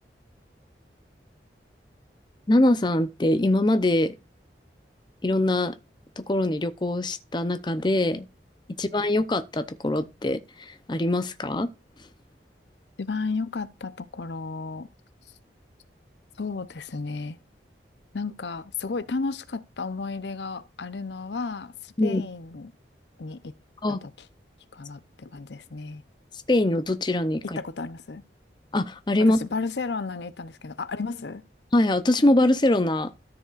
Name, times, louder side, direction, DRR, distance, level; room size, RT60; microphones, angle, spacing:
voice 1, 2.5-4.1 5.2-5.7 6.2-8.3 8.8-11.7 22.0-22.2 23.8-24.0 26.5-27.6 28.7-29.4 31.7-33.1, left 1 dB, 25° left, 0.6 m, -23 dB
voice 2, 13.0-14.9 16.4-17.4 18.1-22.7 23.2-23.5 23.9-24.1 24.7-26.0 27.6-28.2 29.2-31.4, left 4 dB, 80° left, 0.7 m, -33 dB
13.5 x 7.0 x 2.4 m
head